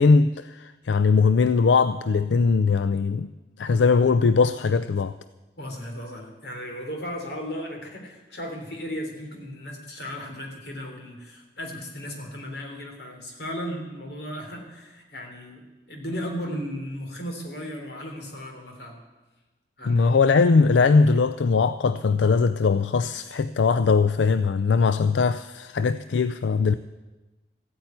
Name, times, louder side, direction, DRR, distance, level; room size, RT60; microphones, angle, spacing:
voice 1, 0.0-3.3 3.6-5.1 19.9-26.7, left 4 dB, 90° left, 0.4 m, -20 dB
voice 2, 5.6-15.6 15.9-19.0 19.8-20.2, equal, 65° left, 3.2 m, -35 dB
14.5 x 8.8 x 9.5 m
head